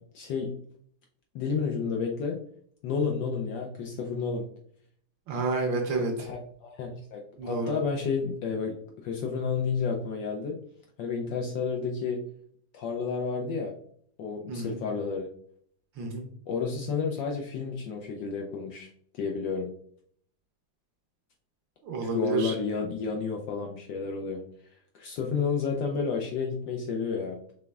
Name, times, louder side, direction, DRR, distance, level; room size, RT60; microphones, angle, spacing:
voice 1, 0.1-0.6 1.3-2.4 2.8-4.5 6.2-10.6 11.0-12.2 12.7-13.7 14.2-15.3 16.5-19.7 22.0-24.4 24.9-27.4, left 5 dB, 75° left, 1 dB, 1.1 m, -31 dB
voice 2, 5.3-6.3 7.4-7.8 14.5-14.8 16.0-16.3 21.8-22.5, right 3 dB, 65° right, 2 dB, 1.4 m, -30 dB
5.2 x 3.4 x 2.3 m, 0.62 s
omnidirectional pair, 2.4 m